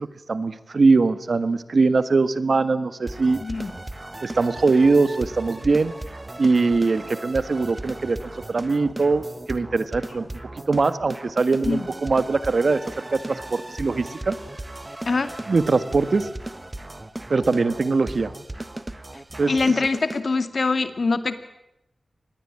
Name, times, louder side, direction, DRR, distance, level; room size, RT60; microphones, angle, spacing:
voice 1, 0.0-3.4 4.2-5.9 6.4-10.4 10.7-14.3 15.5-16.3 17.3-18.3 19.4-19.5, right 3 dB, 65° right, 13 dB, 1.5 m, -21 dB
sound 1, 3.1-20.2, right 2 dB, 30° right, 1.5 m, -37 dB
voice 2, 3.4-3.7 11.6-11.9 15.1-15.3 19.5-21.4, left 3 dB, 65° left, 10 dB, 2.3 m, -23 dB
26.0 x 20.0 x 8.8 m, 0.85 s
cardioid pair, 50°, 0 cm